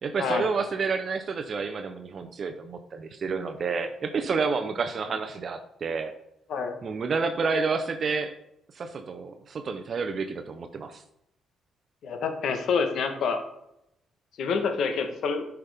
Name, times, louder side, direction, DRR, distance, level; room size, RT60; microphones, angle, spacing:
voice 1, 0.0-6.1 6.8-8.4 8.7-11.0, right 4 dB, 50° right, 7 dB, 0.7 m, -29 dB
voice 2, 12.0-13.4 14.4-15.5, left 5 dB, 70° left, 6 dB, 1.2 m, -27 dB
10.0 x 5.8 x 3.5 m, 0.82 s
cardioid pair, 90°, 0 cm